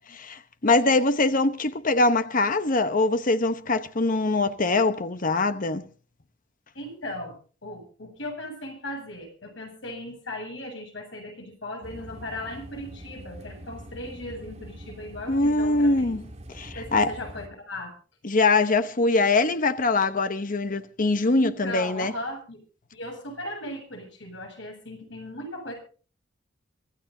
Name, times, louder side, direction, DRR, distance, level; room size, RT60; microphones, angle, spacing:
voice 1, 0.1-5.8 15.3-16.2 16.5-17.1 18.2-22.1, left 3 dB, 45° left, 1.0 m, -23 dB
voice 2, 6.7-7.4 7.6-16.1 16.7-17.9 21.3-22.6 22.9-25.7, left 1 dB, 75° left, 7.9 m, -37 dB
sound 1, 11.8-17.5, equal, 35° right, 2.5 m, -43 dB
24.5 x 15.0 x 2.8 m
head